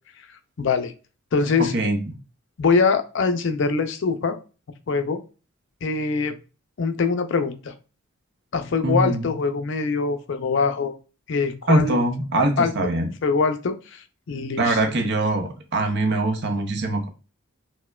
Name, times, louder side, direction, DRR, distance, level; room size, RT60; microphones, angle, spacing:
voice 1, 0.6-0.9 1.3-1.7 2.6-4.4 4.9-5.2 5.8-6.4 6.8-7.7 8.5-10.9 11.3-12.0 12.6-12.7 13.2-14.8, left 4 dB, 60° left, 8 dB, 0.4 m, -23 dB
voice 2, 1.6-2.1 8.8-9.3 11.7-13.1 14.6-17.1, right 2 dB, 55° right, 5 dB, 0.6 m, -23 dB
4.3 x 2.2 x 2.2 m, 0.33 s
head